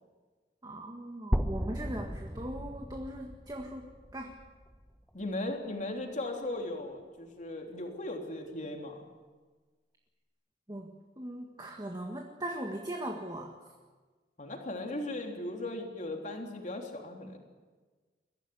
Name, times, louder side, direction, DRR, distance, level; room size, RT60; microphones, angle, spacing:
voice 1, 0.6-4.4 10.7-13.6, right 1 dB, 25° right, 1 dB, 1.8 m, -40 dB
sound 1, 1.3-5.3, equal, ahead, 1.2 m, -36 dB
voice 2, 5.1-9.0 14.4-17.4, left 1 dB, 45° left, 2 dB, 3.3 m, -37 dB
22.5 x 15.0 x 9.9 m, 1.4 s
head